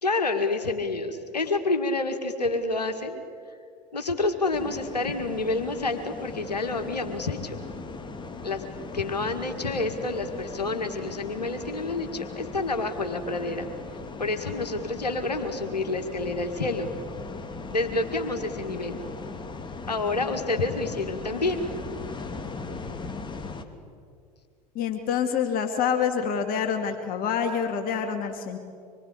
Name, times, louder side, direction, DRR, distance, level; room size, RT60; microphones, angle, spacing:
voice 1, 0.0-3.2 3.9-7.6 8.4-8.6 8.9-13.7 14.2-16.9 17.7-19.0 19.9-21.6, left 3 dB, 85° left, 6 dB, 1.9 m, -28 dB
sound 1, 4.5-23.6, left 3 dB, 25° left, 2.5 m, -39 dB
voice 2, 24.7-28.6, left 7 dB, 45° left, 5 dB, 2.4 m, -27 dB
25.5 x 23.0 x 8.5 m, 2.2 s
figure-of-eight pair, 75°, 20 cm